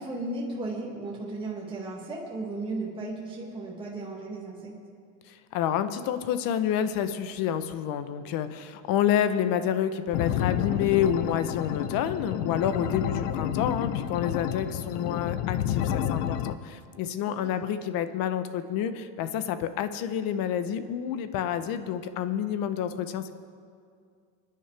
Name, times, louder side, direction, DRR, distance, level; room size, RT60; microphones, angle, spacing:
voice 1, 0.0-4.8 12.6-13.0 17.3-17.6, right 2 dB, 10° right, -5 dB, 2.2 m, -35 dB
voice 2, 5.5-23.3, left 9 dB, 50° left, 11 dB, 0.9 m, -28 dB
sound 1, 10.1-16.5, left 10 dB, 80° left, 0.8 m, -30 dB
27.0 x 10.0 x 3.4 m, 2.2 s
supercardioid pair, 135°, 46 cm